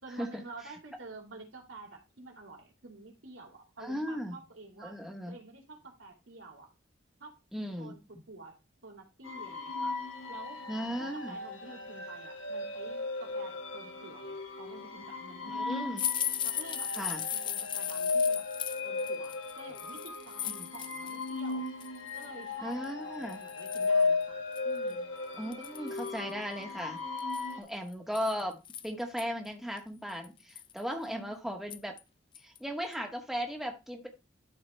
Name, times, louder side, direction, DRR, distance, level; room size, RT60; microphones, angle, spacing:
voice 1, 0.0-5.0 5.3-6.7 7.2-7.3 7.8-8.6 8.8-10.0 10.3-10.6 11.0-16.0 16.4-18.4 18.8-21.7 22.1-24.4 24.6-25.1 31.1-31.3, right 3 dB, 85° right, 0 dB, 2.9 m, -49 dB
voice 2, 3.8-4.4 4.8-5.4 7.5-8.0 10.7-11.4 15.5-16.1 16.9-17.2 20.6-20.7 22.6-23.4 25.4-27.0 27.6-31.9 32.4-34.1, equal, ahead, 2 dB, 1.0 m, -37 dB
sound 1, 9.2-27.6, left 3 dB, 80° left, 1.5 m, -36 dB
sound 2, 16.0-21.3 21.7-22.3 22.8-22.9 23.3-24.0 24.6-24.7 24.9-25.0 25.5-26.2 27.2-29.2 29.8-29.9 30.2-30.8 31.7-32.0 32.3-32.6 32.9-33.0, left 10 dB, 25° left, 0.3 m, -37 dB
12.5 x 4.2 x 3.3 m, 0.26 s
head